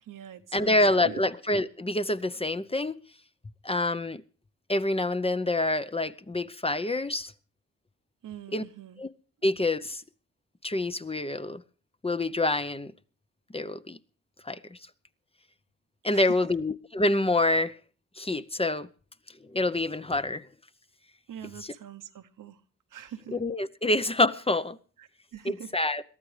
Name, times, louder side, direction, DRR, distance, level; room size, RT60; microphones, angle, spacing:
voice 1, 0.0-1.2 8.2-9.0 16.1-16.4 21.3-22.6 22.9-23.4 25.0-25.8, right 9 dB, 80° right, 1.0 m, -43 dB
voice 2, 0.5-3.0 3.6-4.2 4.7-7.3 8.5-8.6 9.0-9.1 9.4-10.0 10.6-11.6 12.0-12.9 13.5-14.0 14.5-14.8 16.0-17.7 18.2-18.9 19.5-20.4 23.3-24.8 25.4-26.0, left 2 dB, 20° left, 0.7 m, -27 dB
22.0 x 14.0 x 3.3 m
cardioid pair, 60°, 31 cm